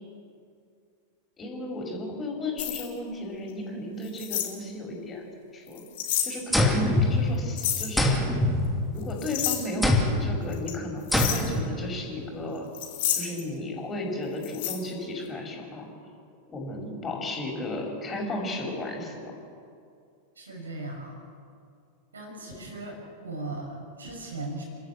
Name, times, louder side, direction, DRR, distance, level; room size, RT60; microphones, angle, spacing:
voice 1, 1.4-5.3 5.5-5.8 6.2-8.3 8.9-12.6 13.2-15.9 16.5-19.3, left 1 dB, 20° left, 0 dB, 5.7 m, -34 dB
sound 1, 2.6-2.9 4.0-4.5 5.7-6.3 7.6-7.9 9.0-9.6 10.5-10.7 11.1-11.5 12.7-13.4 14.4-14.8, left 11 dB, 55° left, 3.5 m, -29 dB
sound 2, 6.5-7.6 8.0-9.2 9.8-10.4 11.1-11.7, left 1 dB, ahead, 2.9 m, -24 dB
voice 2, 20.4-21.2 22.1-24.6, right 2 dB, 70° right, 1 dB, 6.1 m, -38 dB
30.0 x 13.0 x 8.4 m, 2.4 s
figure-of-eight pair, 90°, 0 cm